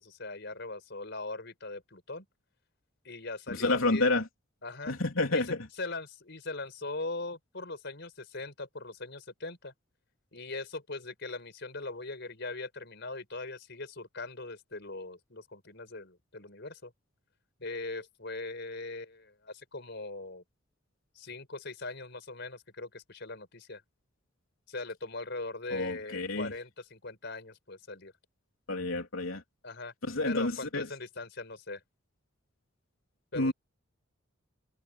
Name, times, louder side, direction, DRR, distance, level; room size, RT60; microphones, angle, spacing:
voice 1, 0.0-2.2 3.0-4.1 4.6-4.9 5.3-9.7 10.3-16.9 17.6-20.4 21.1-23.8 24.7-28.1 29.6-29.9 30.2-31.8 33.3-33.5, left 3 dB, 55° left, 5.2 m, -40 dB
voice 2, 3.5-4.2 4.9-5.7 25.7-26.5 28.7-29.4 30.0-30.9 33.3-33.5, left 2 dB, 85° left, 3.5 m, -29 dB
head